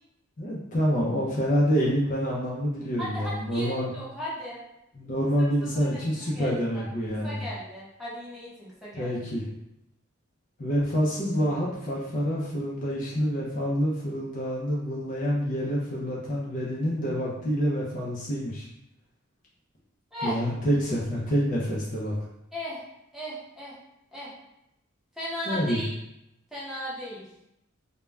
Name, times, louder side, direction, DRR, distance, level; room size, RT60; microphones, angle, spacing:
voice 1, 0.4-3.9 5.0-7.5 9.0-9.5 10.6-18.7 20.2-22.1 25.5-25.8, equal, 40° left, -5 dB, 0.5 m, -27 dB
voice 2, 3.0-4.6 5.4-6.9 7.2-9.2 20.1-20.4 22.5-22.8 23.1-23.8 24.1-24.3 25.2-25.9 26.5-27.3, equal, ahead, -8 dB, 0.8 m, -37 dB
2.3 x 2.1 x 3.2 m, 0.84 s
head